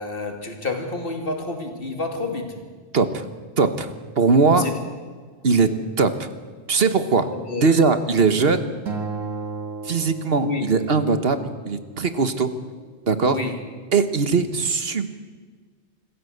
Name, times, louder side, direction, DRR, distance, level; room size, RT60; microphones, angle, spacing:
voice 1, 0.0-2.6 4.6-4.7 7.3-7.9 10.3-10.7 13.2-13.6, left 3 dB, 45° left, 4 dB, 2.8 m, -29 dB
voice 2, 2.9-3.3 3.6-3.9 4.2-4.7 5.4-6.3 6.7-7.3 7.6-8.7 9.8-12.5 13.1-13.4 13.9-15.2, right 4 dB, 50° right, 10 dB, 1.4 m, -20 dB
Acoustic guitar, 8.9-11.2, right 4 dB, 80° right, 2.5 m, -33 dB
25.5 x 15.0 x 8.0 m, 1.5 s
omnidirectional pair, 1.3 m